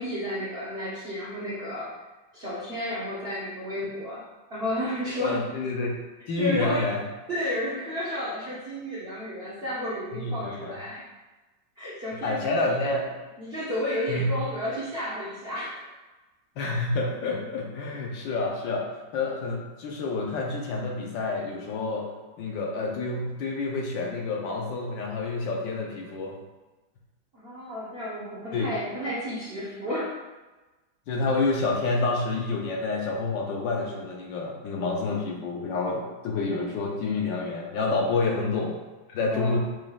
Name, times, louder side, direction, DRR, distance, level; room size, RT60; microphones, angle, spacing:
voice 1, 0.0-2.0 2.3-4.2 4.5-5.4 6.4-6.9 7.3-11.0 11.8-13.0 13.4-15.9 27.3-30.2 38.1-38.5 39.3-39.6, equal, 45° right, -9 dB, 0.8 m, -32 dB
voice 2, 5.1-5.9 6.3-7.0 10.1-10.8 12.2-13.1 14.1-14.4 16.6-18.9 19.1-22.1 22.4-26.4 28.5-28.7 31.1-38.8 39.1-39.6, left 3 dB, 70° left, 0 dB, 1.3 m, -28 dB
6.1 x 3.6 x 2.3 m, 1.2 s
omnidirectional pair, 2.2 m